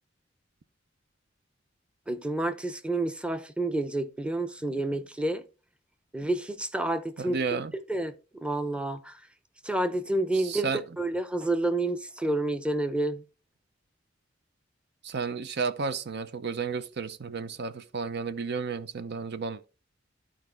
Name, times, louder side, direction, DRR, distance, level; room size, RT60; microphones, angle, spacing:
voice 1, 2.1-5.4 6.1-7.4 7.9-8.1 8.4-9.1 9.6-10.7 11.0-13.2, right 2 dB, 5° right, 0.7 m, -29 dB
voice 2, 7.2-7.7 10.3-10.8 15.0-19.7, right 5 dB, 55° right, 0.6 m, -32 dB
13.0 x 4.5 x 3.2 m
head